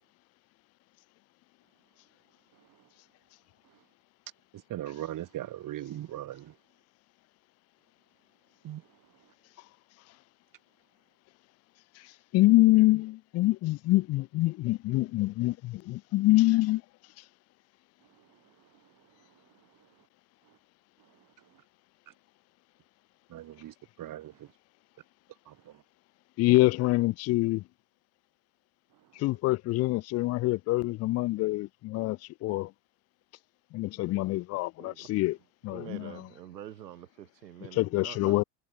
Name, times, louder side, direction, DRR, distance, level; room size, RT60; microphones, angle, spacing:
voice 1, 4.7-6.5 8.6-8.8 23.3-24.5 25.5-25.8, right 13 dB, 40° right, 3.9 m, -39 dB
voice 2, 12.0-16.8 26.4-27.6 29.2-32.7 33.7-35.4 35.6-36.1 37.7-38.4, left 18 dB, 30° left, 0.6 m, -25 dB
voice 3, 34.8-35.3 35.7-38.4, right 11 dB, 85° right, 3.0 m, -46 dB
hypercardioid pair, 95°, 48 cm